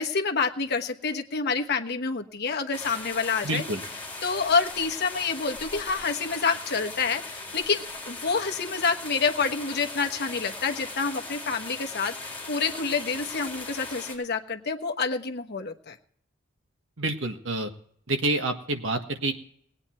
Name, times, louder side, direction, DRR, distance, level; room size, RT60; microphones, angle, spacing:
voice 1, 0.0-3.6 4.2-15.9, left 5 dB, 55° left, 5 dB, 1.2 m, -28 dB
sound 1, 2.7-14.2, left 3 dB, 10° left, 4.3 m, -39 dB
voice 2, 3.4-3.8 17.0-17.7 18.1-19.3, right 2 dB, 70° right, 6 dB, 1.5 m, -28 dB
19.5 x 9.0 x 4.4 m, 0.64 s
head